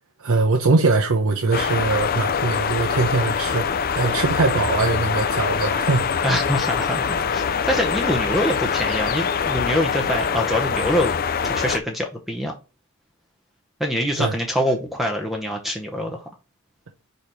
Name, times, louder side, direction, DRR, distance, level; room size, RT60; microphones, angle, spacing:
voice 1, 0.2-6.1 14.2-14.3, right 3 dB, 75° right, 0.8 m, -21 dB
sound 1, 1.5-11.8, left 6 dB, 40° left, 0.5 m, -24 dB
voice 2, 6.2-12.5 13.8-16.3, equal, ahead, 0.7 m, -25 dB
5.1 x 4.2 x 4.5 m
head